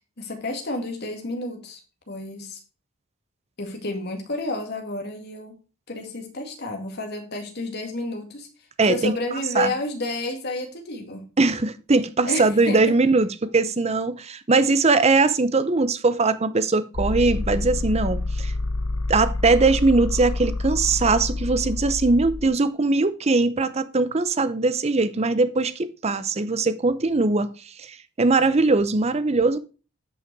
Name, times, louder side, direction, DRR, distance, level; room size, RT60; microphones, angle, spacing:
voice 1, 0.2-1.8 2.1-2.6 3.6-5.6 5.9-8.5 8.9-11.2 12.3-12.9, left 2 dB, 50° left, 2.1 m, -30 dB
voice 2, 8.8-9.1 9.5-9.7 11.4-18.5 19.1-29.6, right 3 dB, 30° right, 0.6 m, -21 dB
sound 1, 16.9-22.5, left 2 dB, 75° left, 1.1 m, -27 dB
9.7 x 5.6 x 4.7 m
head